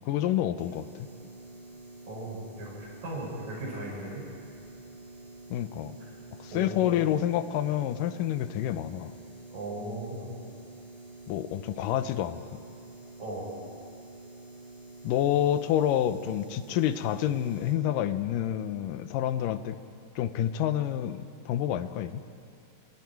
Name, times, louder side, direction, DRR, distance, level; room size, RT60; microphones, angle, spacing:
voice 1, 0.1-0.9 5.5-5.9 6.4-9.1 11.3-12.4 15.0-19.8 20.2-22.2, left 11 dB, 80° left, 12 dB, 2.4 m, -28 dB
sound 1, 0.6-17.7, right 2 dB, 35° right, 3.3 m, -48 dB
voice 2, 2.1-4.2 6.5-7.0 9.5-10.4 13.2-13.5, right 1 dB, 90° right, -5 dB, 8.5 m, -37 dB
27.5 x 25.5 x 4.6 m, 2.5 s
omnidirectional pair, 3.8 m